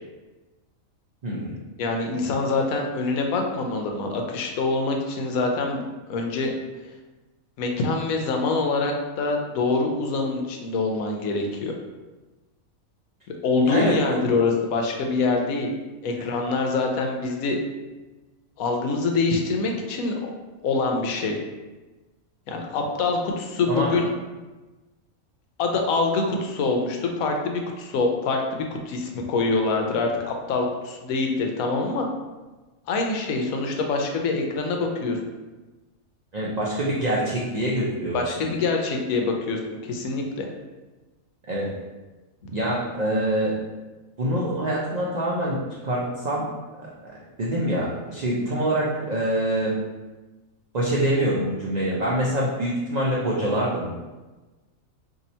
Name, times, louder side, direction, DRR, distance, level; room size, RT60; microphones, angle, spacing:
voice 1, 1.2-1.6 13.6-14.2 23.7-24.0 36.3-38.5 41.5-41.7 42.5-43.6 44.2-46.5 46.8-49.8 50.7-53.9, right 1 dB, 85° right, -5 dB, 0.3 m, -25 dB
voice 2, 1.8-5.8 6.1-6.5 7.6-11.7 13.4-15.7 16.0-17.6 18.6-20.3 20.6-21.4 22.5-24.1 25.6-32.1 32.9-35.2 38.1-40.5, left 3 dB, 80° left, 2 dB, 1.0 m, -25 dB
2.7 x 2.7 x 4.1 m, 1.2 s
omnidirectional pair, 1.4 m